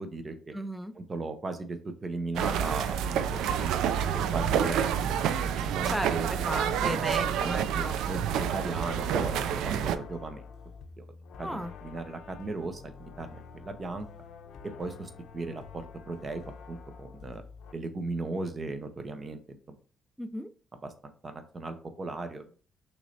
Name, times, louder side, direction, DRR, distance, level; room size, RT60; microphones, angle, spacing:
voice 1, 0.0-0.6 0.9-6.3 6.7-6.9 7.2-10.4 11.0-11.1 11.4-11.5 11.8-14.1 14.8-16.4 16.7-17.4 17.7-19.8 20.8-22.6, right 3 dB, 35° right, 8 dB, 0.8 m, -37 dB
voice 2, 0.5-0.9 5.9-8.2 11.4-11.7 20.2-20.5, equal, 5° right, 12 dB, 0.4 m, -35 dB
sound 1, 2.3-10.0, right 8 dB, 90° right, 0.4 m, -28 dB
sound 2, 8.3-17.7, left 5 dB, 75° left, 0.5 m, -48 dB
6.1 x 3.2 x 2.7 m, 0.40 s
cardioid pair, 90°, 0 cm